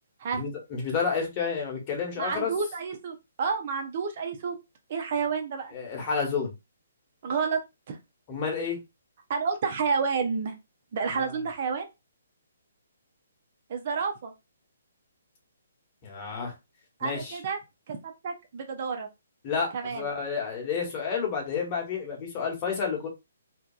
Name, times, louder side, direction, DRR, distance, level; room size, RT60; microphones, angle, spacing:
voice 1, 0.3-2.5 5.7-6.5 8.3-8.8 11.1-11.2 16.0-16.5 17.0-17.4 19.4-23.1, left 6 dB, 30° left, 0 dB, 1.1 m, -30 dB
voice 2, 2.2-4.5 4.9-5.7 7.2-7.6 7.9-8.0 9.3-10.5 10.9-11.9 13.7-14.3 17.0-17.6 17.9-18.0 18.2-19.1 19.7-20.1, right 5 dB, 45° right, 4 dB, 0.5 m, -29 dB
2.7 x 2.2 x 2.3 m, 0.23 s
hypercardioid pair, 145°, 0 cm